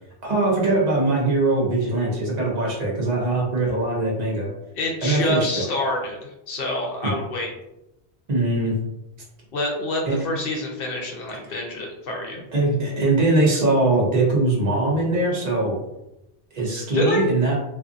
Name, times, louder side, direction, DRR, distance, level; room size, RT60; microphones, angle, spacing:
voice 1, 0.2-4.5 5.0-5.6 8.3-8.7 10.1-10.2 11.5-11.6 12.5-15.7 16.5-17.5, right 2 dB, 40° right, -4 dB, 0.9 m, -21 dB
voice 2, 4.7-6.2 6.5-7.5 9.5-12.4 16.9-17.2, left 1 dB, 65° left, 0 dB, 0.7 m, -26 dB
2.5 x 2.5 x 2.4 m, 0.90 s
omnidirectional pair, 1.1 m